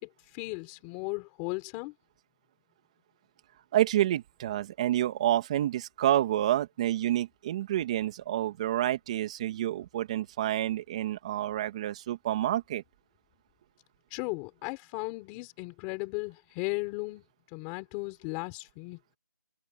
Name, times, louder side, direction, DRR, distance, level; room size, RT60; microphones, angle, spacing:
voice 1, 0.0-2.0 14.1-17.2 17.5-19.0, left 27 dB, 10° left, 4.0 m, -36 dB
voice 2, 3.7-12.8, right 13 dB, 20° right, 2.6 m, -28 dB
open air
figure-of-eight pair, 170°, 11 cm